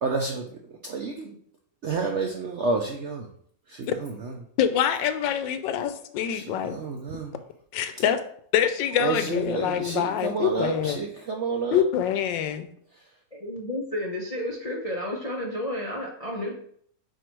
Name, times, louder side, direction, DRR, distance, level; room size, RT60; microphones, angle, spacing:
voice 1, 0.0-1.4 1.8-3.3 3.7-4.3 6.3-7.3 9.0-11.8, right 4 dB, 80° right, 2 dB, 0.6 m, -30 dB
voice 2, 4.6-6.8 7.7-8.2 8.5-11.0 11.7-12.7, left 9 dB, 80° left, 10 dB, 1.3 m, -25 dB
voice 3, 13.3-16.5, left 1 dB, 55° left, -2 dB, 0.4 m, -31 dB
4.7 x 4.5 x 4.5 m, 0.63 s
omnidirectional pair, 2.0 m